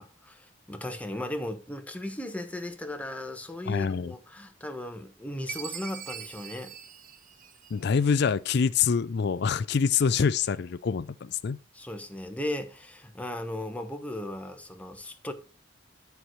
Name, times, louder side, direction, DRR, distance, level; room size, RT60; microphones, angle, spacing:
voice 1, 0.0-6.7 11.7-15.3, left 1 dB, 5° left, 1.2 m, -36 dB
voice 2, 3.7-4.1 7.7-11.6, left 6 dB, 55° left, 0.4 m, -25 dB
Chime, 5.5-8.0, right 8 dB, 45° right, 0.9 m, -42 dB
11.5 x 4.8 x 6.2 m
head